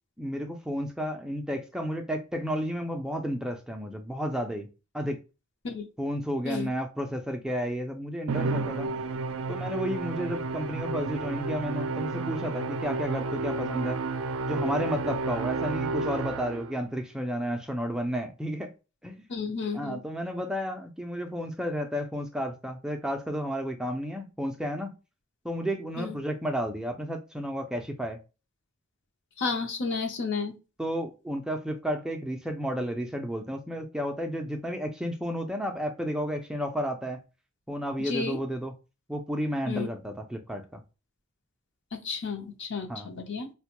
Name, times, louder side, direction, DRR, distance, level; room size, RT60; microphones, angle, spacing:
voice 1, 0.2-4.7 4.9-5.2 6.0-8.9 9.5-14.0 14.5-18.7 19.0-19.2 19.7-24.9 25.4-28.2 30.8-37.2 37.7-38.7 39.1-40.8 42.9-43.1, equal, 5° right, 0.3 m, -32 dB
Musical instrument, 8.3-16.8, right 3 dB, 75° right, 0.4 m, -31 dB
voice 2, 19.3-20.0 26.0-26.2 29.4-30.5 38.0-38.4 39.7-39.9 41.9-43.5, left 4 dB, 60° left, 0.6 m, -32 dB
4.0 x 2.1 x 2.9 m
head